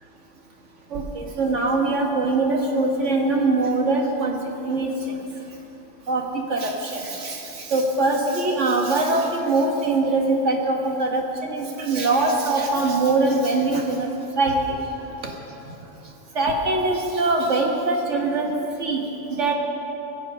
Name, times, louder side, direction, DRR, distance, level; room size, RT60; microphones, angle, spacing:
voice 1, 0.9-4.4 4.7-5.2 6.1-14.1 14.4-14.6 15.2-15.3 16.4-19.0 19.4-19.5, right 2 dB, 65° right, 1 dB, 1.8 m, -22 dB
20.5 x 6.9 x 5.4 m, 2.9 s
omnidirectional pair, 1.3 m